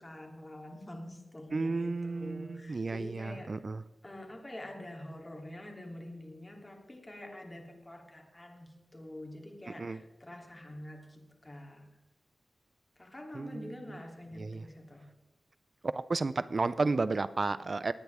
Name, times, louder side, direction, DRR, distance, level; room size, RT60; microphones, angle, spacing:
voice 1, 0.0-3.5 4.0-11.9 13.0-15.1 17.5-17.6, left 1 dB, 25° left, 1 dB, 3.0 m, -46 dB
voice 2, 1.5-3.8 9.8-10.0 13.3-13.6 14.4-14.6 15.8-17.9, right 3 dB, 50° right, 15 dB, 0.4 m, -32 dB
20.0 x 9.4 x 3.5 m, 1.0 s
cardioid pair, 60°, 0 cm